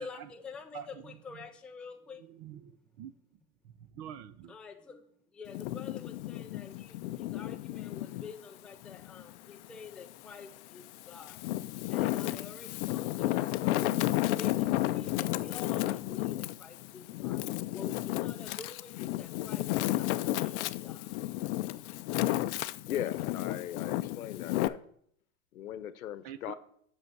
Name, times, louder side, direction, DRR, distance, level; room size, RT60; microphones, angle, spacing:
voice 1, 0.0-2.3 4.5-5.1 5.3-11.4 11.9-21.5, left 4 dB, 5° left, 4 dB, 0.3 m, -48 dB
voice 2, 0.7-1.5 2.2-3.1 3.6-4.6 26.2-26.5, right 10 dB, 45° right, 15 dB, 0.7 m, -46 dB
Wind, 5.5-8.3 8.8-10.1 10.7-24.7, left 16 dB, 55° left, 0.5 m, -32 dB
voice 3, 22.9-24.8 25.5-26.5, left 11 dB, 90° left, 14 dB, 0.9 m, -38 dB
8.0 x 6.3 x 4.6 m, 0.65 s
hypercardioid pair, 115°, 41 cm